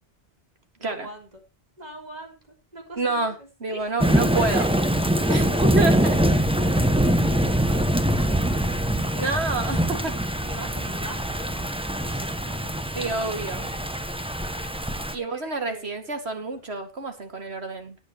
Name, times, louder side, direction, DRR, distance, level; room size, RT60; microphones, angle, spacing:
voice 1, 0.8-1.4 1.8-4.7 5.5-5.6 6.2-9.1 10.4-11.7 12.0-13.4 15.1-16.1 16.6-16.7, right 1 dB, 40° right, 3.8 m, -43 dB
voice 2, 3.0-3.3 3.6-4.7 5.3-6.2 9.2-10.1 13.0-13.7 15.1-18.0, right 3 dB, 70° right, 2.5 m, -28 dB
Thunder / Rain, 4.0-15.1, right 1 dB, 5° right, 1.0 m, -23 dB
19.0 x 9.2 x 3.1 m
omnidirectional pair, 1.1 m